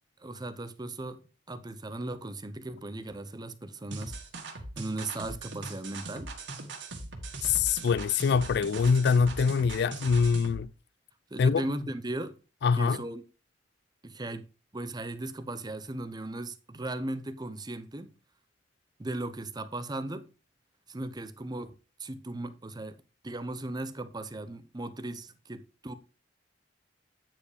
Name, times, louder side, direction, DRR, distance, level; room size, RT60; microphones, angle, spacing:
voice 1, 0.2-4.2 4.5-6.3 11.3-12.4 12.8-13.2 14.0-14.4 14.7-18.1 19.0-20.3 20.9-21.7 22.0-23.0 23.2-25.9, right 2 dB, 25° right, 0.7 m, -37 dB
sound 1, 3.9-10.6, right 2 dB, 85° right, 1.9 m, -40 dB
voice 2, 7.4-10.7 11.4-11.6 12.6-13.0, left 5 dB, 65° left, 0.4 m, -24 dB
9.1 x 4.8 x 4.9 m
head